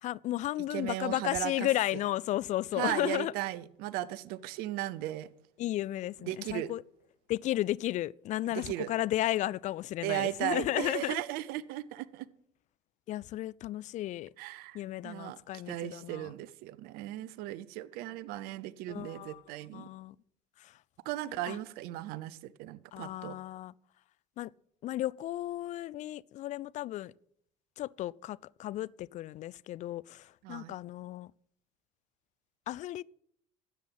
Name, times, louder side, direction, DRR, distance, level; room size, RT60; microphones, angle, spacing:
voice 1, 0.0-3.3 5.6-6.8 7.3-11.2 13.1-14.3 14.7-16.3 18.9-19.4 19.7-20.2 20.6-20.7 21.5-21.6 22.9-23.7 24.4-24.5 24.8-27.1 27.8-31.3 32.7-33.0, left 14 dB, 45° left, 0.4 m, -34 dB
voice 2, 0.7-1.7 2.7-5.3 6.2-6.7 8.5-8.9 10.0-12.3 14.4-15.4 15.7-19.9 21.0-23.4 30.4-30.7, right 15 dB, 65° right, 0.7 m, -36 dB
12.5 x 8.4 x 5.8 m
hypercardioid pair, 65°, 17 cm